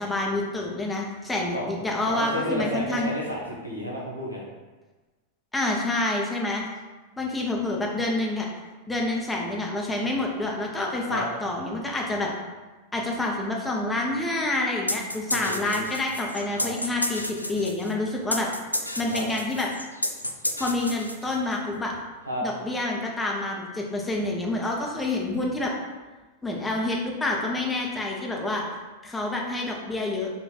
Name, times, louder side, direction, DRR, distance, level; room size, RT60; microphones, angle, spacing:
voice 1, 0.0-3.1 5.5-6.6 7.2-8.5 8.9-12.3 12.9-17.2 17.5-18.5 19.0-19.7 20.6-21.9 22.4-25.7 26.4-28.6 29.0-30.3, left 2 dB, 10° left, -1 dB, 0.8 m, -28 dB
voice 2, 2.0-4.4 11.1-11.3 15.3-15.8 16.6-16.7 19.1-19.3 22.2-22.4, equal, 90° right, -4 dB, 1.0 m, -31 dB
sound 1, 14.9-21.6, left 1 dB, 90° left, 0.3 m, -31 dB
4.1 x 2.6 x 4.0 m, 1.2 s
figure-of-eight pair, 90°, 0 cm